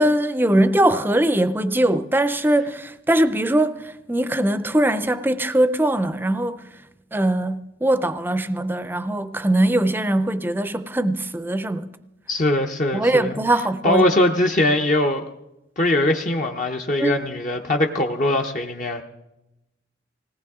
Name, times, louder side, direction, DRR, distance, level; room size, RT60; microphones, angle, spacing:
voice 1, 0.0-3.8 4.1-6.6 7.1-11.9 12.9-14.0 17.0-17.2, right 1 dB, 10° right, 0.5 m, -21 dB
voice 2, 12.3-13.4 13.8-15.2 15.8-19.0, left 1 dB, 45° left, 0.7 m, -21 dB
19.5 x 18.0 x 3.6 m
head